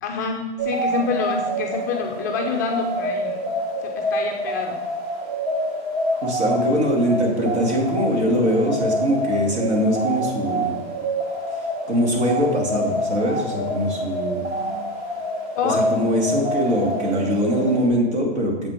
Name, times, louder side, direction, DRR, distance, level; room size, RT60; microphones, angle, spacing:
voice 1, 0.0-3.5 3.8-4.8 9.3-9.4 14.4-14.9 15.5-15.9, left 4 dB, 20° left, 1 dB, 0.3 m, -27 dB
sound 1, 0.6-17.9, equal, 45° right, 2.2 m, -27 dB
voice 2, 6.2-10.7 11.9-14.4 15.6-18.7, equal, 75° right, 0 dB, 2.7 m, -22 dB
7.4 x 6.0 x 5.1 m, 1.2 s
hypercardioid pair, 145°, 33 cm